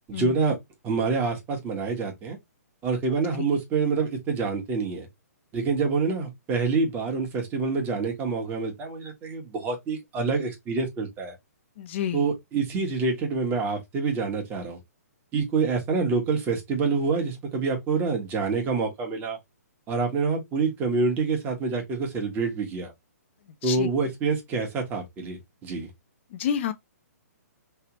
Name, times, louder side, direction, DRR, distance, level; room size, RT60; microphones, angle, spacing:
voice 1, 0.1-0.6 0.8-2.4 2.8-5.1 5.5-11.3 12.1-14.8 15.3-19.4 19.9-22.9 23.6-25.9, right 4 dB, 20° right, 1.3 m, -27 dB
voice 2, 11.8-12.3 23.6-23.9 26.3-26.7, left 9 dB, 45° left, 0.7 m, -29 dB
3.4 x 2.8 x 2.9 m
hypercardioid pair, 140°, 9 cm